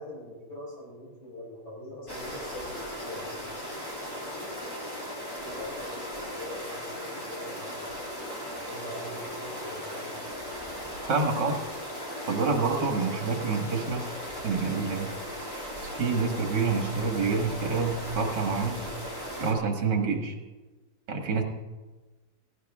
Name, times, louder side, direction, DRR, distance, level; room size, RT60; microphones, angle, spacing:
voice 1, 0.0-3.6 5.4-7.8 8.5-10.1, left 1 dB, 40° left, -4 dB, 5.5 m, -42 dB
sound 1, 2.1-19.5, equal, 10° left, 3.1 m, -37 dB
voice 2, 11.1-11.6 12.3-14.1 14.4-15.1 15.9-18.9 19.4-20.4 21.1-21.4, right 4 dB, 70° right, 3 dB, 2.5 m, -27 dB
17.5 x 15.5 x 3.6 m, 1.3 s
omnidirectional pair, 1.9 m